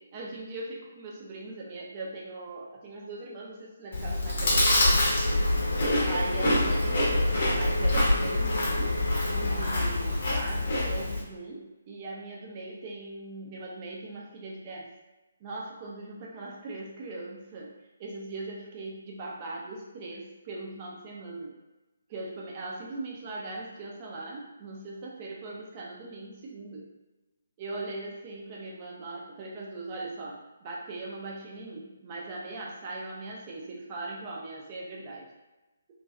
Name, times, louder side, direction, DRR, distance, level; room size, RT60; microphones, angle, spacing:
voice 1, 0.1-5.0 6.0-9.0 9.3-14.9 15.4-17.7 18.0-21.5 22.1-26.9 27.6-35.3, right 2 dB, 30° right, -2 dB, 0.5 m, -40 dB
Chewing mastication, 3.9-11.2, left 1 dB, 50° left, 0.6 m, -27 dB
sound 1, 4.4-10.7, left 1 dB, 85° left, 0.3 m, -29 dB
2.5 x 2.2 x 2.2 m, 1.1 s
figure-of-eight pair, 140°, 0 cm